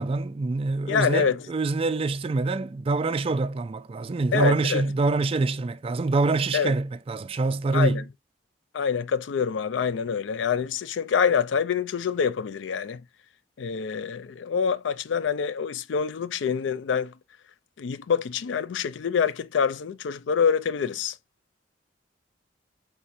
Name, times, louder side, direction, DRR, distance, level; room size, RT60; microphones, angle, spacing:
voice 1, 0.0-8.1, right 3 dB, 30° right, 0.3 m, -25 dB
voice 2, 0.9-1.4 4.3-4.8 6.5-6.7 7.7-8.0 8.7-13.0 13.6-17.1 17.8-21.2, left 6 dB, 85° left, 0.4 m, -26 dB
5.7 x 3.6 x 2.6 m
head